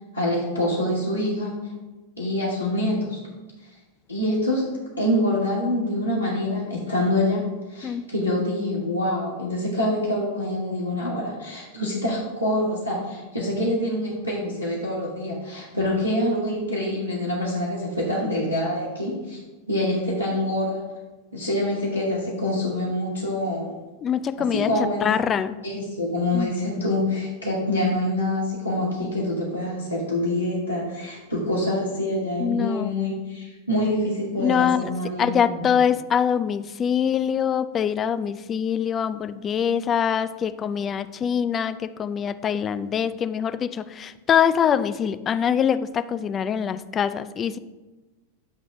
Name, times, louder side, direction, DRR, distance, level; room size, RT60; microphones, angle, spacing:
voice 1, 0.1-1.6 2.2-3.2 4.1-7.4 7.7-19.4 19.7-20.8 21.3-23.7 24.4-25.1 25.6-35.6, left 1 dB, 90° left, -8 dB, 1.3 m, -26 dB
voice 2, 24.0-24.7 25.0-25.6 26.3-26.5 32.4-32.9 34.4-34.9 35.2-47.6, left 8 dB, 25° left, 13 dB, 0.3 m, -24 dB
8.3 x 2.9 x 6.1 m, 1.2 s
figure-of-eight pair, 90°, 0 cm